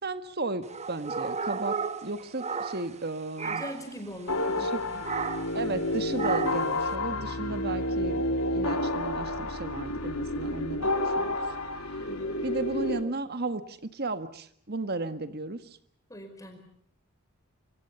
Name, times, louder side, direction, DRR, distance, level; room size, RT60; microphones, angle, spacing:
voice 1, 0.0-3.6 4.5-5.0 5.5-8.2 8.5-11.4 12.4-15.8, right 2 dB, 45° right, 10 dB, 1.6 m, -34 dB
sound 1, 0.7-3.1 3.4-3.9 5.0-5.6 6.2-6.8, right 5 dB, 30° right, 1.1 m, -33 dB
voice 2, 3.4-4.8 12.0-12.4 16.1-16.6, equal, 15° left, 5 dB, 5.1 m, -42 dB
sound 2, 4.3-13.0, left 1 dB, 85° left, 3.2 m, -30 dB
25.0 x 25.0 x 7.0 m, 0.64 s
head